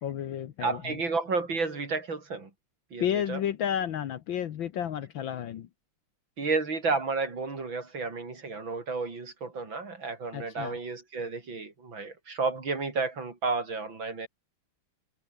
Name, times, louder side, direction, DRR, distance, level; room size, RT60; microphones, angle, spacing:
voice 1, 0.0-1.0 3.0-5.7 10.3-10.8, left 9 dB, 65° left, 1.7 m, -31 dB
voice 2, 0.6-2.5 2.9-3.4 6.4-14.3, right 4 dB, 60° right, 5.4 m, -31 dB
omnidirectional pair, 2.4 m